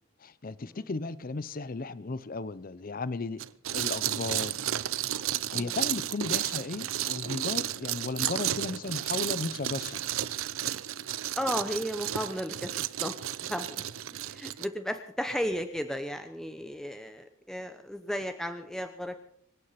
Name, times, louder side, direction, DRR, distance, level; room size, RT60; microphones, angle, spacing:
voice 1, 0.2-3.4 3.7-4.6 5.5-10.1, left 3 dB, 40° left, 17 dB, 0.6 m, -35 dB
sound 1, 3.4-14.7, right 12 dB, 75° right, 0.6 m, -32 dB
voice 2, 11.3-13.1 13.4-13.8 14.1-19.2, equal, ahead, 7 dB, 0.8 m, -34 dB
25.0 x 9.7 x 5.8 m, 0.65 s
head